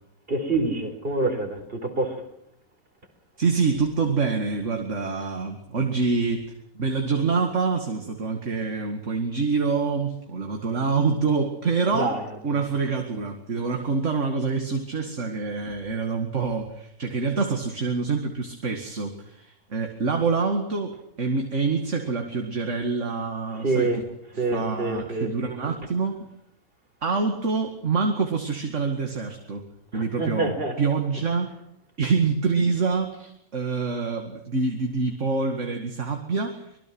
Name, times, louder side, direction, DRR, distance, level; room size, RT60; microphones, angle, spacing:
voice 1, 0.3-2.2 11.9-12.2 12.5-12.7 23.5-24.0 24.4-25.5 29.9-30.8, right 2 dB, 40° right, 4.7 m, -26 dB
voice 2, 3.4-12.1 12.4-23.9 24.3-26.2 27.0-29.6 29.9-31.5 32.0-36.8, right 4 dB, 55° right, 2.5 m, -26 dB
26.0 x 21.5 x 6.2 m
omnidirectional pair, 1.5 m